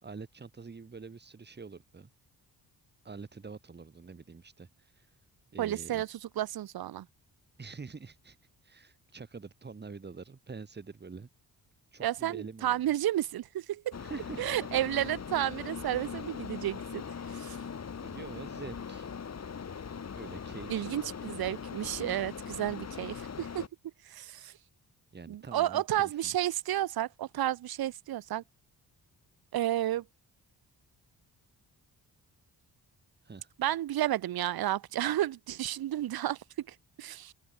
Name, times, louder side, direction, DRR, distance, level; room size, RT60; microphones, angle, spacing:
voice 1, 0.0-2.1 3.0-5.1 5.5-6.0 7.6-8.4 8.6-11.3 11.9-12.8 14.0-14.4 18.0-19.1 20.1-21.0 25.1-26.3 33.2-33.5, right 4 dB, 25° right, 2.0 m, -46 dB
voice 2, 5.6-7.1 12.0-14.0 14.4-17.0 17.3-17.6 20.7-23.7 24.1-24.5 25.3-28.4 29.5-30.0 33.6-37.3, right 13 dB, 65° right, 0.8 m, -32 dB
sound 1, 13.9-23.7, left 6 dB, 40° left, 2.5 m, -41 dB
open air
wide cardioid pair, 145°, 40 cm